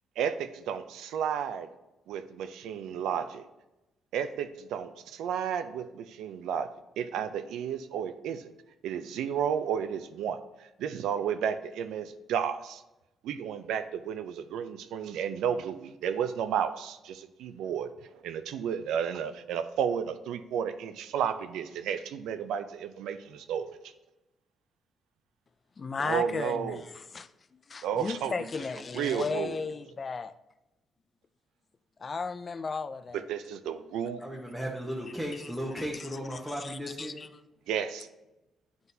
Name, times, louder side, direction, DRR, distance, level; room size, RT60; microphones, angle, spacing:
voice 1, 0.2-1.7 2.1-3.5 4.1-6.7 7.0-8.5 8.8-10.4 10.8-12.8 13.2-17.9 18.2-23.8 26.0-26.8 27.8-28.5 28.9-29.6 33.1-34.2 37.7-38.1, right 8 dB, 85° right, 10 dB, 0.4 m, -32 dB
voice 2, 25.8-27.3 27.7-30.3 32.0-33.2 35.8-35.9 36.6-37.3, left 4 dB, 35° left, 12 dB, 0.3 m, -35 dB
voice 3, 34.2-37.3, equal, ahead, -3 dB, 0.9 m, -36 dB
9.3 x 4.0 x 2.7 m, 0.97 s
cardioid pair, 90°, 0 cm